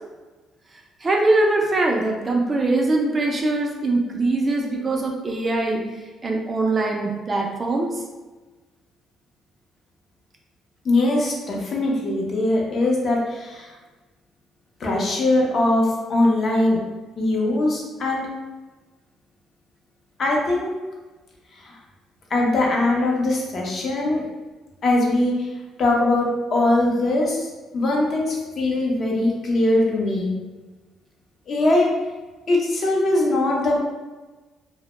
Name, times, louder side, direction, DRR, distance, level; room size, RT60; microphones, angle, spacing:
voice 1, 1.0-5.8 6.2-7.9, right 2 dB, 25° right, 0 dB, 0.3 m, -22 dB
voice 2, 10.8-13.7 14.8-16.8 17.2-18.2 20.2-20.7 21.6-21.8 22.3-24.2 24.8-25.5 25.8-30.3 31.5-31.9 32.5-33.7, left 2 dB, 45° left, -2 dB, 0.6 m, -21 dB
2.1 x 2.0 x 2.9 m, 1.2 s
cardioid pair, 120°, 0 cm